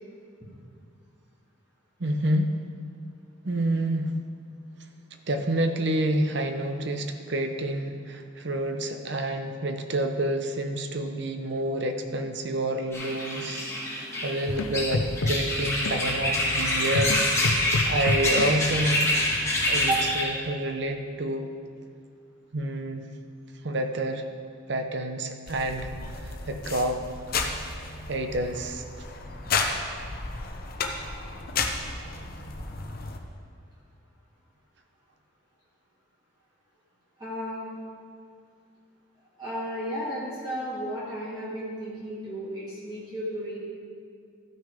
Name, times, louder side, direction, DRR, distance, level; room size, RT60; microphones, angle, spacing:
voice 1, 2.0-2.6 3.4-4.3 5.2-19.1 19.7-21.5 22.5-23.1 23.6-24.3 24.7-25.9 26.2-27.0 27.3-27.5 28.1-28.8, right 1 dB, 55° right, 6 dB, 0.7 m, -28 dB
sound 1, 12.9-20.2, left 1 dB, 15° left, 1.8 m, -26 dB
sound 2, 14.5-20.1, left 2 dB, 80° left, 0.6 m, -31 dB
sound 3, 25.5-33.2, left 4 dB, 45° left, 0.8 m, -33 dB
voice 2, 37.2-37.7 39.4-43.6, right 1 dB, 20° right, -9 dB, 2.6 m, -33 dB
13.0 x 6.3 x 5.0 m, 2.3 s
head